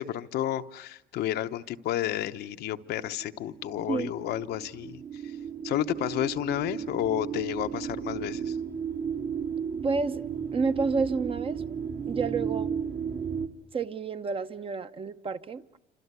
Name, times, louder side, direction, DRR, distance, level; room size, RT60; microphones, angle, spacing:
voice 1, 0.0-5.0 5.6-8.6, left 12 dB, 75° left, 0.9 m, -31 dB
sound 1, 2.5-13.5, right 7 dB, 60° right, 2.4 m, -34 dB
voice 2, 9.8-10.2 10.5-11.6 12.1-12.7 13.7-15.6, right 4 dB, 35° right, 0.9 m, -29 dB
27.5 x 26.5 x 8.2 m
cardioid pair, 110°, 17 cm